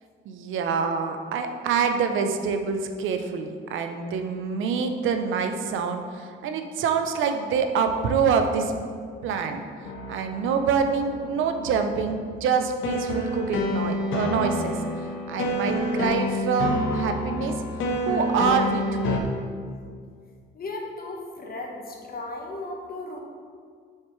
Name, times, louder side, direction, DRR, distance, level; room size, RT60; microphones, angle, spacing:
voice 1, 0.3-8.7 9.2-9.6 10.1-14.8 15.3-17.6 18.1-19.3, right 6 dB, 80° right, 6 dB, 0.6 m, -26 dB
sound 1, 9.8-19.2, left 1 dB, 90° left, 0.8 m, -29 dB
voice 2, 20.5-23.2, left 2 dB, 50° left, 0 dB, 1.2 m, -36 dB
6.6 x 6.5 x 3.2 m, 2.1 s
cardioid pair, 90°, 20 cm